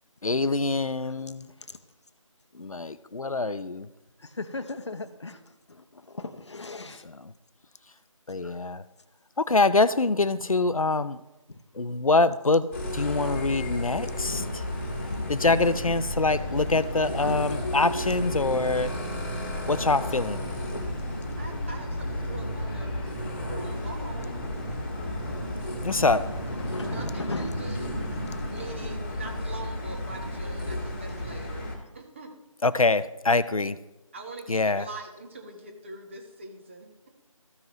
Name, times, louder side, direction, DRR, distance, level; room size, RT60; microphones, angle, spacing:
voice 1, 0.2-1.5 2.6-3.9 8.3-8.8 9.4-11.2 11.8-12.7 12.9-14.4 15.3-18.9 19.7-20.4 25.8-26.2 32.6-33.8 34.5-34.8, left 3 dB, 85° left, 0.6 m, -24 dB
voice 2, 4.2-7.1 8.4-8.6 11.5-11.6 14.2-15.7 16.0-17.8 18.2-19.4 20.1-20.2 20.7-20.9 25.2-25.3 25.7-27.7, left 3 dB, 55° left, 0.9 m, -40 dB
sound 1, 12.7-31.8, left 1 dB, 20° left, 1.7 m, -33 dB
sound 2, 16.2-28.9, right 1 dB, 5° left, 0.7 m, -42 dB
voice 3, 21.4-22.9 23.5-24.3 26.8-27.9 28.5-31.7 31.9-32.3 34.1-37.1, right 3 dB, 20° right, 1.1 m, -42 dB
14.5 x 5.6 x 3.1 m
figure-of-eight pair, 160°, 17 cm